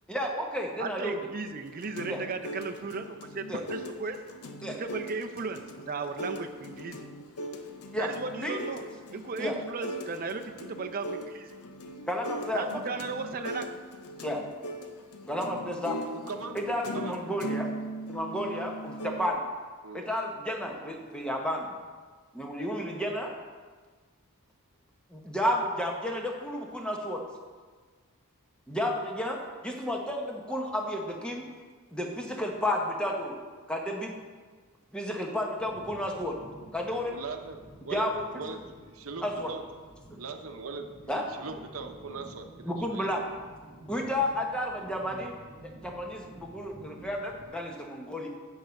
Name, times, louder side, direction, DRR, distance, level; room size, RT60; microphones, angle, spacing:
voice 1, 0.1-1.1 2.1-2.2 3.5-3.6 4.6-4.8 7.9-8.1 8.4-8.6 9.4-9.6 12.1-12.8 14.2-14.5 15.3-16.0 16.7-17.7 18.1-19.4 19.9-21.7 22.3-23.3 25.1-27.2 28.7-31.4 31.9-33.4 33.7-34.1 34.9-36.4 36.7-37.1 37.9-38.2 39.2-39.5 41.1-41.3 42.6-43.2 43.9-45.4 45.6-48.3, left 1 dB, 5° left, 1 dB, 0.9 m, -32 dB
voice 2, 0.8-4.2 4.7-7.1 8.0-8.8 9.1-11.6 12.5-13.7, right 4 dB, 40° right, 5 dB, 0.5 m, -36 dB
sound 1, 1.6-19.3, equal, 85° left, 0.7 m, -40 dB
voice 3, 15.8-16.6 16.9-17.1 19.8-20.0 37.1-38.1 38.3-39.6 40.2-43.1, right 4 dB, 65° right, 5 dB, 0.8 m, -40 dB
sound 2, 35.6-47.5, right 1 dB, 25° left, 2.0 m, -51 dB
9.0 x 5.8 x 5.2 m, 1.5 s
head